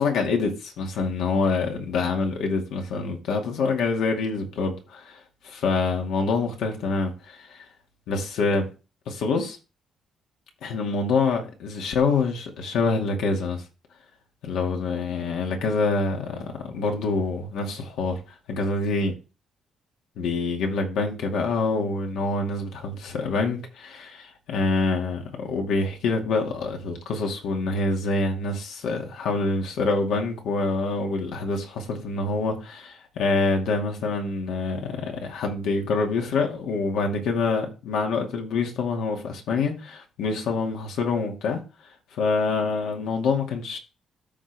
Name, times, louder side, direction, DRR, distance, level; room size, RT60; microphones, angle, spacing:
voice 1, 0.0-5.2 5.4-7.6 8.1-8.7 9.1-9.6 10.6-13.6 14.4-18.2 18.5-19.1 20.2-41.6 42.2-43.8, left 3 dB, 80° left, 2.2 m, -26 dB
13.5 x 4.6 x 3.5 m
cardioid pair, 155°, 0 cm